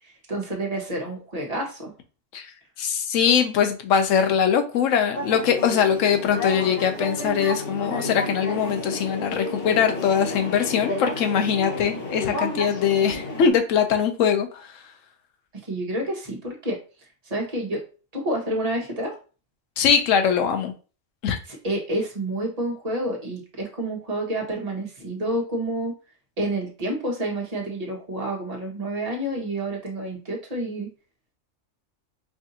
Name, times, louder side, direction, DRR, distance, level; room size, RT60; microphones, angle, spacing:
voice 1, 0.0-1.9 15.5-16.8 17.2-17.8 18.1-19.2 21.5-25.9 26.4-30.9, right 1 dB, 30° right, -1 dB, 1.2 m, -29 dB
voice 2, 2.8-14.7 19.8-20.7 21.2-21.4, left 7 dB, 85° left, 6 dB, 1.0 m, -22 dB
sound 1, 5.1-13.5, left 2 dB, 50° left, 1.1 m, -31 dB
4.8 x 2.6 x 2.7 m, 0.35 s
omnidirectional pair, 1.3 m